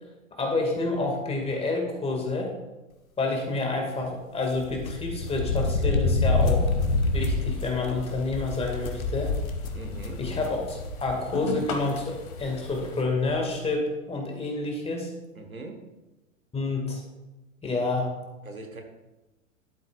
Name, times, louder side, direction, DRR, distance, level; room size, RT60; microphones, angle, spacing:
voice 1, 0.3-2.5 3.2-6.7 7.1-9.4 10.2-15.1 16.5-17.0 17.6-18.2, left 3 dB, 15° left, 1 dB, 2.0 m, -28 dB
sound 1, 4.5-11.2 11.6-11.7 12.8-12.9 13.1-13.4, left 3 dB, 80° left, 1.2 m, -27 dB
sound 2, 6.2-13.0, left 4 dB, 50° left, 1.6 m, -36 dB
voice 2, 9.7-10.3 15.3-15.8 18.4-18.8, right 3 dB, 90° right, 4 dB, 1.4 m, -40 dB
12.0 x 7.7 x 2.4 m, 1.1 s
figure-of-eight pair, 100°, 41 cm